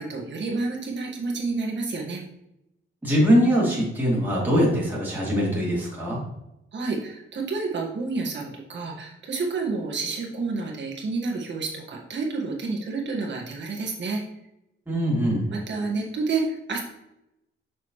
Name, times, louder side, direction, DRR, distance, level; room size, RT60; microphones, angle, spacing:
voice 1, 0.0-2.2 6.7-14.2 15.5-16.8, right 3 dB, 60° right, -1 dB, 1.7 m, -29 dB
voice 2, 3.0-6.2 14.9-15.5, equal, 10° right, -6 dB, 2.7 m, -22 dB
6.6 x 6.4 x 3.2 m, 0.87 s
wide cardioid pair, 160°, 21 cm